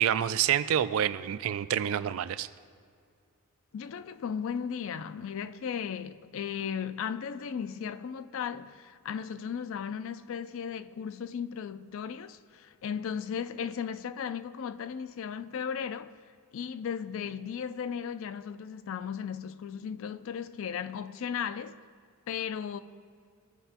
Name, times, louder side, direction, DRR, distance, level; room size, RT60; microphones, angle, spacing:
voice 1, 0.0-2.5, right 10 dB, 65° right, 0.3 m, -27 dB
voice 2, 3.7-16.1 16.5-21.8 22.3-22.8, left 7 dB, 60° left, 0.3 m, -36 dB
15.5 x 5.6 x 2.9 m
head